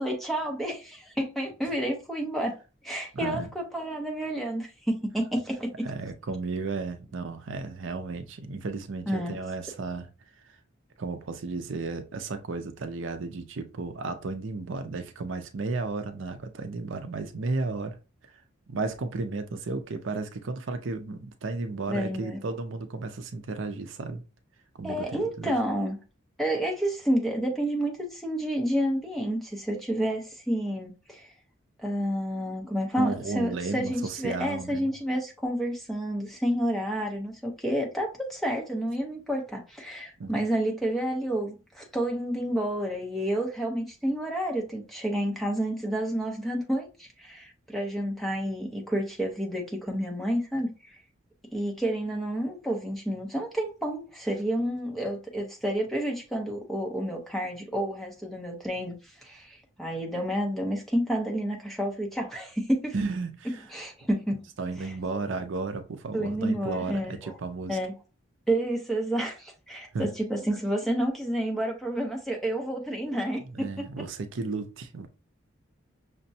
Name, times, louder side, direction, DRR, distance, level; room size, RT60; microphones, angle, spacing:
voice 1, 0.0-2.5 2.8-5.7 9.1-9.4 21.9-22.4 24.8-26.0 26.4-31.3 31.8-50.7 51.5-58.9 59.2-62.9 63.7-64.4 64.8-64.9 66.1-67.3 67.7-67.9 68.5-73.9, right 1 dB, ahead, 0.8 m, -30 dB
voice 2, 3.1-3.5 5.8-10.1 11.0-18.0 18.7-24.2 24.7-25.5 33.0-34.9 40.2-40.4 62.9-63.6 64.6-67.8 69.9-70.1 73.5-75.1, right 3 dB, 70° right, 0.5 m, -33 dB
5.9 x 2.1 x 2.7 m
head